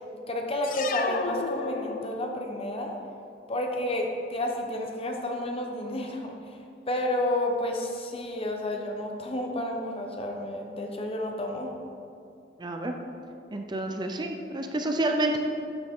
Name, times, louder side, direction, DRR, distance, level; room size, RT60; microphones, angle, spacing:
voice 1, 0.3-3.0 3.5-6.3 6.9-11.7, left 1 dB, 35° left, 2 dB, 0.9 m, -30 dB
sound 1, 0.6-2.5, left 4 dB, 50° left, 0.5 m, -32 dB
voice 2, 12.6-12.9 13.5-15.4, right 1 dB, 25° right, 3 dB, 0.5 m, -29 dB
11.5 x 6.4 x 3.7 m, 2.6 s
head